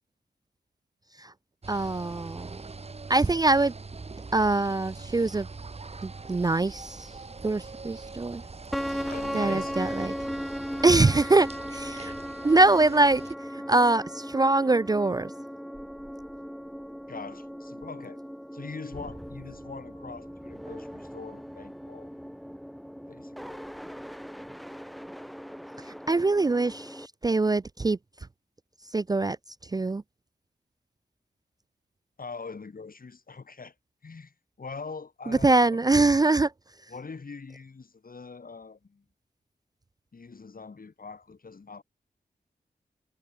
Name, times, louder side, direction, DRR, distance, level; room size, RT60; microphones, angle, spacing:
sound 1, 1.6-13.4, right 4 dB, 40° right, 1.2 m, -43 dB
voice 1, 1.7-2.6 3.1-3.7 4.3-5.5 6.0-7.1 7.4-8.4 8.9-9.0 9.3-10.1 10.8-12.1 12.4-13.2 13.5-15.3 26.1-28.0 28.9-29.4 29.6-30.0 35.3-36.5, right 2 dB, 25° right, 0.4 m, -23 dB
sound 2, 8.7-27.1, equal, ahead, 0.9 m, -38 dB
voice 2, 9.1-9.7 10.2-10.5 17.1-18.2 18.5-22.1 23.1-23.6 32.2-33.7 34.0-35.8 36.9-39.0 40.1-41.8, left 4 dB, 60° left, 7.6 m, -43 dB
cardioid pair, 45°, 16 cm